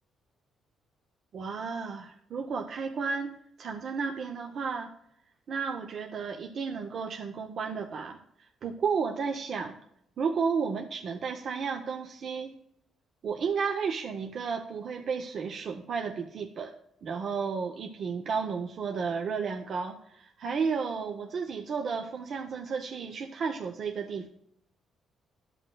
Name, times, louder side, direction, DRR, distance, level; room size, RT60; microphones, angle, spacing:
voice 1, 1.3-4.9 5.5-9.8 10.2-12.6 13.2-16.7 17.0-24.3, right 5 dB, 60° right, 4 dB, 0.6 m, -33 dB
12.0 x 5.8 x 2.2 m, 0.75 s
cardioid pair, 90°, 0 cm